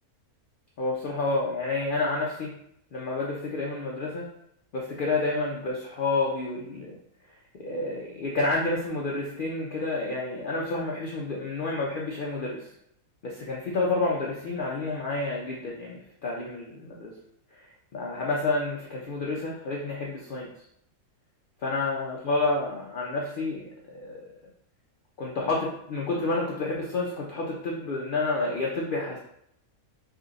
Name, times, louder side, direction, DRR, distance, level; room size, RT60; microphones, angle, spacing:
voice 1, 0.8-2.5 2.9-4.3 4.7-7.0 7.6-12.7 13.2-17.1 17.5-17.6 17.9-20.5 21.6-23.6 23.9-24.2 25.2-29.2, left 2 dB, 70° left, -2 dB, 0.4 m, -29 dB
3.5 x 2.4 x 3.9 m, 0.73 s
omnidirectional pair, 1.5 m